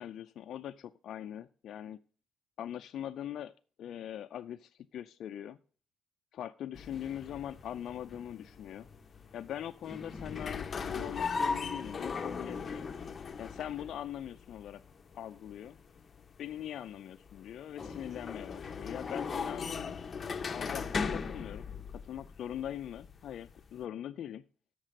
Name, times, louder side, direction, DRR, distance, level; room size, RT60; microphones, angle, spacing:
voice 1, 0.0-2.0 2.6-3.5 3.8-5.6 6.3-8.9 9.3-12.9 13.4-14.8 15.1-15.7 16.4-20.0 20.5-24.4, left 10 dB, 70° left, 7 dB, 0.3 m, -42 dB
sound 1, 6.7-23.8, left 5 dB, 40° left, 0.7 m, -39 dB
7.5 x 6.5 x 6.4 m, 0.40 s
cardioid pair, 90°, 0 cm